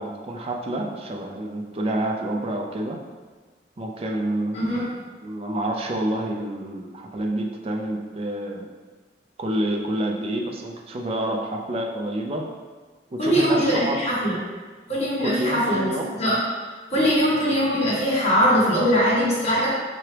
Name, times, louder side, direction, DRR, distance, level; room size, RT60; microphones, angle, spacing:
voice 1, 0.0-3.0 3.8-4.9 5.2-8.7 9.4-12.5 13.1-14.0 15.2-16.2, right 1 dB, 35° right, 1 dB, 0.5 m, -28 dB
voice 2, 4.5-4.9 13.2-14.4 14.9-15.9 16.2-16.4 16.9-19.7, equal, 40° left, -8 dB, 1.4 m, -21 dB
4.7 x 2.9 x 3.2 m, 1.4 s
head